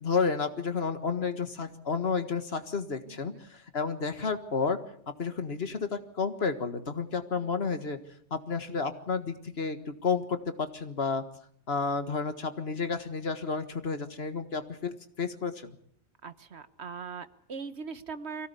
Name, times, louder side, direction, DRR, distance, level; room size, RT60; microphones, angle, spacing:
voice 1, 0.0-4.8 5.2-8.0 8.3-11.2 11.7-15.8, left 5 dB, 60° left, 9 dB, 1.9 m, -31 dB
voice 2, 3.1-3.4 7.4-7.7 16.2-18.5, right 5 dB, 70° right, 13 dB, 1.5 m, -41 dB
24.0 x 17.0 x 8.5 m, 0.65 s
omnidirectional pair, 1.2 m